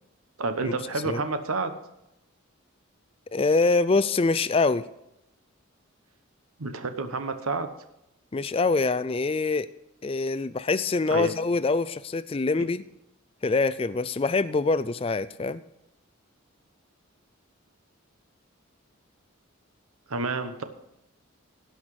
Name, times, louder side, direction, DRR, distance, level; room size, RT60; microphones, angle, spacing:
voice 1, 0.4-1.7 6.6-7.7 11.1-11.4 12.6-12.7 20.1-20.6, right 3 dB, 85° right, 8 dB, 1.0 m, -29 dB
voice 2, 3.3-4.9 8.3-9.7 10.0-12.8 13.4-15.6, left 3 dB, 25° left, 16 dB, 0.3 m, -24 dB
17.0 x 5.8 x 4.8 m, 0.87 s
head